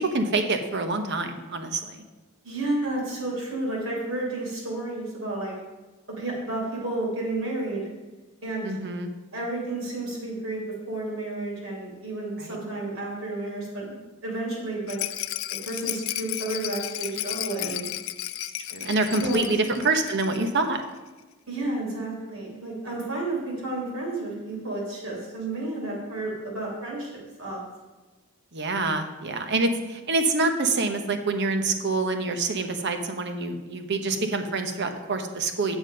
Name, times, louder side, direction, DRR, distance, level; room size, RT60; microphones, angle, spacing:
voice 1, 0.0-2.0 8.6-9.1 12.4-12.6 18.7-20.8 25.5-25.6 28.5-35.8, right 3 dB, 55° right, 7 dB, 0.9 m, -26 dB
voice 2, 2.4-5.5 6.2-7.9 8.4-8.8 9.3-10.6 10.9-14.0 14.2-15.0 15.6-17.8 19.1-19.5 21.5-27.1 27.4-27.6, right 2 dB, 70° right, -3 dB, 3.5 m, -31 dB
Rattle, 14.9-20.6 20.8-20.9 21.2-21.3, left 15 dB, 70° left, 0.4 m, -33 dB
9.2 x 6.2 x 5.2 m, 1.2 s
head